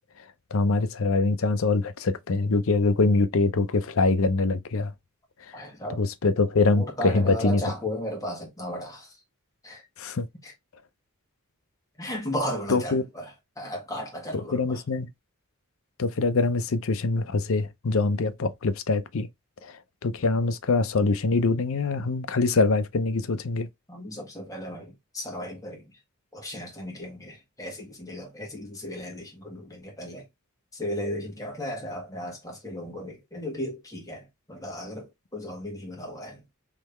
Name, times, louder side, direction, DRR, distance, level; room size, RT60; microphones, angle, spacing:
voice 1, 0.5-4.9 5.5-5.6 6.0-7.6 10.0-10.3 12.7-13.0 14.3-15.1 16.0-19.3 19.6-23.7, left 3 dB, 65° left, 0.6 m, -24 dB
voice 2, 5.5-6.0 6.7-9.1 9.6-9.8 10.4-10.5 12.0-14.8 23.9-25.9 26.3-30.2 30.7-36.4, equal, 15° left, 1.7 m, -35 dB
3.7 x 3.2 x 3.1 m
head